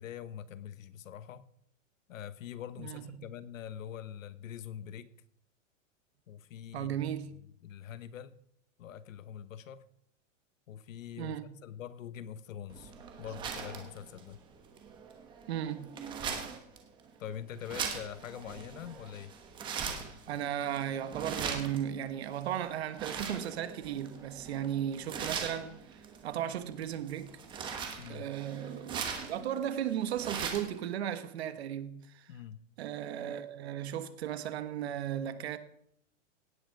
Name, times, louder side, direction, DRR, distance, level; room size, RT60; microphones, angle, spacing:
voice 1, 0.0-1.5 2.1-5.1 6.3-7.1 7.6-8.4 8.8-9.8 10.7-12.9 13.2-14.4 17.2-19.3 28.0-28.3 32.3-32.6, left 9 dB, 85° left, 1.1 m, -44 dB
voice 2, 2.8-3.3 6.7-7.3 11.2-11.5 15.5-15.9 20.3-25.8 26.2-27.4 28.1-32.3 32.8-35.6, right 10 dB, 55° right, 1.3 m, -36 dB
sound 1, 12.7-30.8, right 6 dB, 10° right, 1.2 m, -41 dB
17.5 x 9.2 x 4.7 m
supercardioid pair, 175°, 38 cm